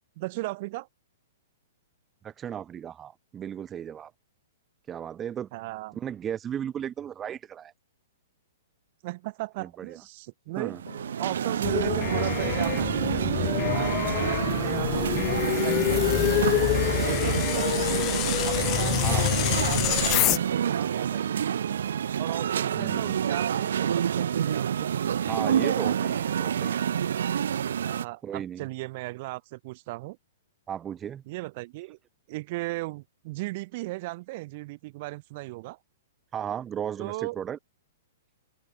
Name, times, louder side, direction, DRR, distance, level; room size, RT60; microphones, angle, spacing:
voice 1, 0.2-0.9 5.5-6.0 9.0-10.7 11.2-14.0 14.4-16.7 17.0-21.5 22.2-24.9 27.8-30.2 31.3-32.0 32.3-35.8 37.0-37.4, right 21 dB, 45° right, 2.2 m, -36 dB
voice 2, 2.2-4.1 4.9-5.5 6.0-7.7 9.6-10.0 10.6-10.8 19.0-19.3 22.8-23.2 25.3-26.8 28.2-28.7 30.7-31.2 36.3-37.6, right 9 dB, 20° right, 0.7 m, -35 dB
sound 1, 10.7-17.4, left 9 dB, 70° left, 6.0 m, -54 dB
sound 2, 10.7-28.0, right 8 dB, 75° right, 1.7 m, -28 dB
sound 3, 11.6-20.4, left 19 dB, 30° left, 1.1 m, -26 dB
hypercardioid pair, 140°, 0 cm